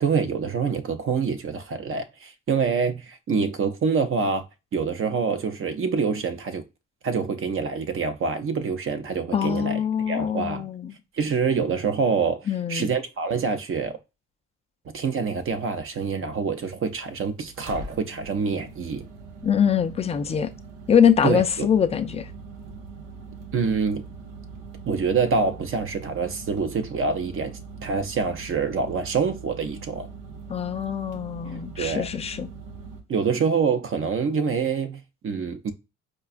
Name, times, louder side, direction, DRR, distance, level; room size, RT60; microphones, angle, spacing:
voice 1, 0.0-4.4 4.7-6.6 7.0-10.7 11.2-14.0 14.9-19.0 21.2-21.7 23.5-24.0 24.8-27.5 27.8-30.1 31.8-32.1 33.1-35.7, right 5 dB, 45° right, 0.6 m, -26 dB
voice 2, 9.3-10.9 12.5-12.9 19.4-20.5 20.9-22.3 30.5-32.5, left 8 dB, 20° left, 0.3 m, -23 dB
sound 1, 15.2-33.0, right 4 dB, 90° right, 0.8 m, -42 dB
4.6 x 2.2 x 2.4 m
cardioid pair, 90°, 30 cm